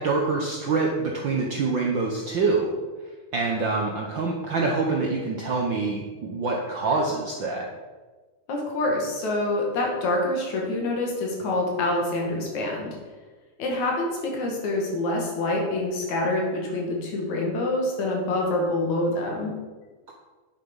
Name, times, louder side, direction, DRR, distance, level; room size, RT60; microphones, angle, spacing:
voice 1, 0.0-2.8 3.3-7.7, right 3 dB, 65° right, 0 dB, 1.2 m, -25 dB
voice 2, 8.5-13.0 13.6-19.5, left 2 dB, 75° left, 0 dB, 3.4 m, -26 dB
9.5 x 7.4 x 5.4 m, 1.3 s
omnidirectional pair, 3.3 m